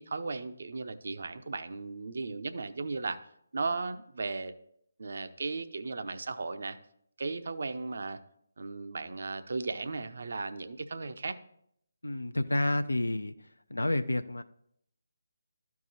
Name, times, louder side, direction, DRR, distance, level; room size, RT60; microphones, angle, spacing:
voice 1, 0.0-3.2 3.5-4.5 5.0-6.8 7.2-8.2 8.6-11.4, right 3 dB, 60° right, 10 dB, 0.6 m, -36 dB
voice 2, 12.0-13.3 13.7-14.4, left 1 dB, 90° left, 10 dB, 0.4 m, -29 dB
12.5 x 4.8 x 4.1 m, 0.71 s
figure-of-eight pair, 150°, 0 cm